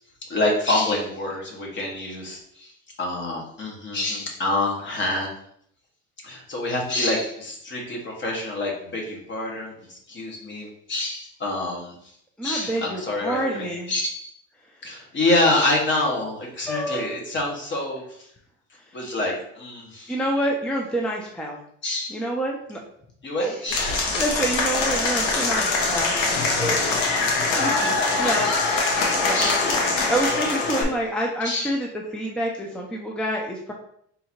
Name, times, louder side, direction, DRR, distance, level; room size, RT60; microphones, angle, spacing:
voice 1, 0.3-2.7 3.0-5.3 6.2-12.0 12.4-14.3 14.8-18.3 18.9-20.1 21.8-22.2 23.2-24.0 27.6-28.5 29.3-29.7 30.8-30.9 31.4-31.7, left 2 dB, 40° left, 0 dB, 1.3 m, -27 dB
voice 2, 12.4-13.9 16.7-17.1 20.1-21.6 22.1-22.8 23.4-23.6 24.1-26.1 26.6-26.9 27.4-29.5 30.1-33.7, right 1 dB, 5° left, 0 dB, 0.5 m, -28 dB
Applause / Crowd, 23.7-30.8, left 3 dB, 85° left, 1.0 m, -23 dB
3.8 x 2.7 x 4.4 m, 0.68 s
cardioid pair, 125°, 29 cm